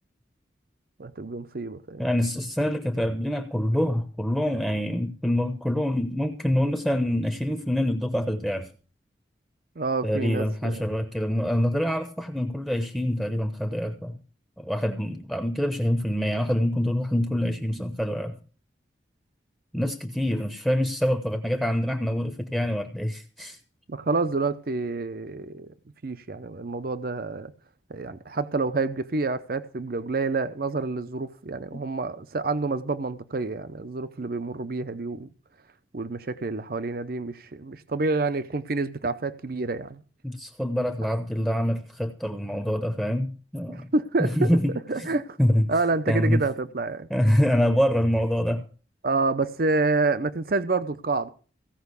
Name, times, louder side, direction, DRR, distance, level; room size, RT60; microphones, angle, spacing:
voice 1, 1.0-2.0 9.8-10.8 23.9-25.7 26.0-27.5 27.9-35.3 35.9-40.0 43.7-44.5 44.9-45.4 45.7-47.1 49.0-51.3, right 3 dB, 55° right, 0.7 m, -28 dB
voice 2, 2.0-8.7 10.0-14.2 14.6-18.4 19.7-23.6 34.2-34.3 40.2-43.9 44.2-44.7 45.0-45.1 45.4-45.7 46.1-46.4 47.1-48.6, equal, ahead, 0.8 m, -25 dB
16.5 x 5.7 x 8.2 m
head